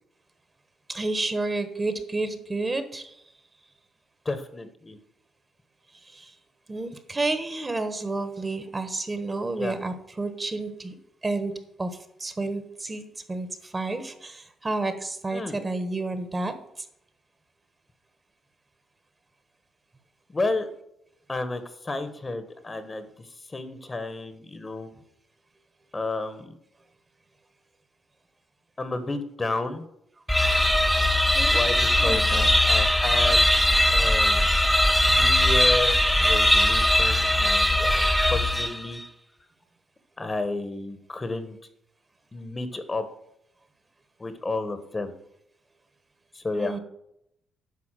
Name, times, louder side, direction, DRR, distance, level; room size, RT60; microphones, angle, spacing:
voice 1, 0.9-3.1 6.1-6.3 6.7-10.9 11.2-11.5 11.8-16.5 31.3-31.6 32.0-32.5 46.6-46.8, right 2 dB, 25° right, 10 dB, 1.4 m, -30 dB
voice 2, 4.2-5.0 9.6-9.7 15.3-15.6 20.3-20.7 21.3-24.9 25.9-26.5 28.8-29.8 31.4-32.2 32.6-33.4 33.9-34.5 35.1-39.0 40.2-41.6 42.3-43.0 44.2-45.1 46.3-46.8, left 2 dB, 25° left, 11 dB, 1.3 m, -31 dB
sound 1, 30.3-39.0, left 1 dB, 5° left, 1.0 m, -20 dB
9.6 x 5.7 x 7.5 m, 0.77 s
cardioid pair, 90°, 0 cm